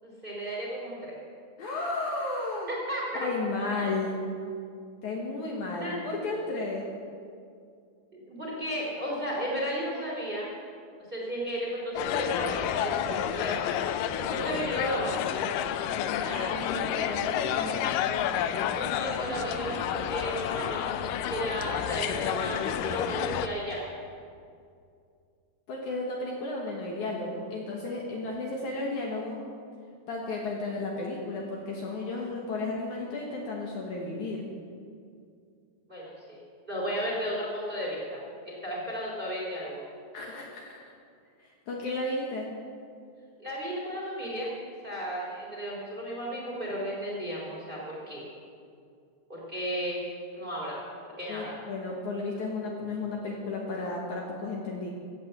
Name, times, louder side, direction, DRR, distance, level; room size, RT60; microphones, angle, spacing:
voice 1, 0.0-1.1 2.7-3.3 5.4-6.0 8.1-10.5 11.1-13.6 14.2-15.2 18.7-23.8 35.9-36.4 36.7-39.8 43.4-44.5 44.8-48.2 49.3-50.0 50.3-51.5, equal, 15° right, -4 dB, 3.0 m, -34 dB
voice 2, 1.6-2.7 3.2-4.2 5.0-6.9 16.2-17.8 25.7-29.4 30.1-34.4 40.1-40.9 41.4-42.5 51.3-54.9, left 2 dB, 60° left, -1 dB, 2.5 m, -33 dB
sound 1, 11.9-23.5, left 9 dB, 80° left, 2.0 m, -30 dB
14.5 x 8.5 x 8.0 m, 2.3 s
omnidirectional pair, 4.3 m